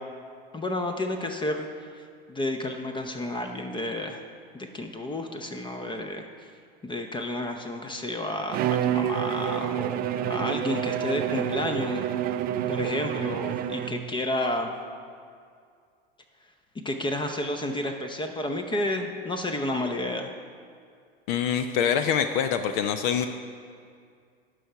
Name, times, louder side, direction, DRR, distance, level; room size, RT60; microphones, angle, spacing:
voice 1, 0.5-2.0 2.3-4.2 4.5-6.2 6.8-12.0 12.7-14.7 16.8-20.3, left 1 dB, 15° left, 5 dB, 0.6 m, -31 dB
Bowed string instrument, 8.5-14.2, right 11 dB, 30° right, 0.4 m, -28 dB
voice 2, 21.3-23.3, left 8 dB, 55° left, 9 dB, 0.5 m, -25 dB
11.0 x 4.7 x 5.6 m, 2.2 s
hypercardioid pair, 90°, 30 cm